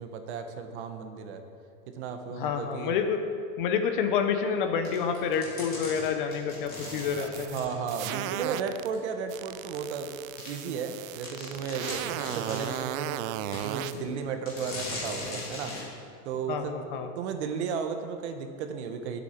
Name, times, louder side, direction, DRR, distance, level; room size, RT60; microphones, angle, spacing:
voice 1, 0.0-1.5 1.9-2.9 7.2-10.1 10.5-13.2 13.6-15.8 16.2-19.2, right 6 dB, 45° right, 7 dB, 1.1 m, -34 dB
voice 2, 2.4-3.2 3.6-7.6 13.9-14.1 16.5-17.1, left 6 dB, 35° left, 7 dB, 0.7 m, -28 dB
sound 1, 4.8-8.5 8.9-9.0 9.7-9.8 10.4-10.5 10.9-11.0 11.2-12.9 13.5-14.0 14.5-15.9, left 2 dB, 20° left, 3.2 m, -39 dB
sound 2, 6.7-8.9 9.3-13.9, right 14 dB, 65° right, 0.5 m, -36 dB
18.5 x 8.4 x 4.4 m, 2.4 s
supercardioid pair, 175°, 46 cm